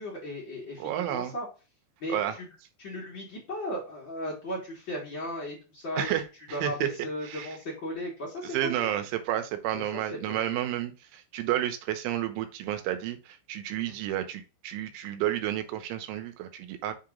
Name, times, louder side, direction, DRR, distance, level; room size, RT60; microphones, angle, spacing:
voice 1, 0.0-1.5 2.0-2.5 2.8-6.1 6.5-8.9 9.7-9.8 10.1-10.6, equal, 55° left, -4 dB, 1.3 m, -36 dB
voice 2, 0.8-1.3 2.1-2.4 6.0-6.2 6.5-6.9 7.2-7.6 8.4-16.9, right 12 dB, 85° right, 8 dB, 3.3 m, -31 dB
6.8 x 2.9 x 5.1 m, 0.32 s
omnidirectional pair, 5.4 m